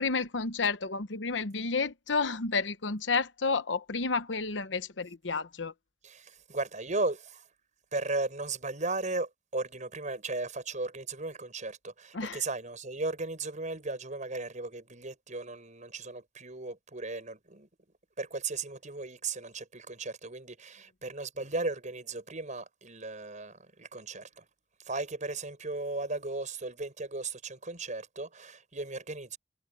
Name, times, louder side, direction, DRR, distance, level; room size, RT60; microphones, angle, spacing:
voice 1, 0.0-5.7 12.1-12.4, left 4 dB, 75° left, 1.0 m, -31 dB
voice 2, 6.0-7.4 7.9-17.7 18.2-24.4 24.9-29.4, right 3 dB, 40° right, 6.2 m, -36 dB
head